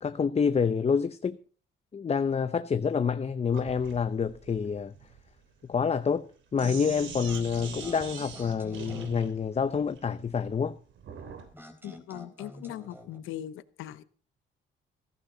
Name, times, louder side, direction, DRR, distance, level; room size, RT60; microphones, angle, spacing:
voice 1, 0.0-1.4 1.9-4.9 5.7-10.8, left 6 dB, 30° left, 0.7 m, -28 dB
Sink (filling or washing), 3.5-11.5, right 6 dB, 75° right, 3.3 m, -44 dB
Keyboard (musical), 6.6-9.9, right 8 dB, 55° right, 1.7 m, -49 dB
sound 1, 7.3-9.2 11.5-13.2, left 1 dB, 10° right, 3.9 m, -48 dB
voice 2, 11.8-14.0, left 12 dB, 90° left, 1.0 m, -40 dB
15.0 x 14.5 x 4.0 m
cardioid pair, 90°, 20 cm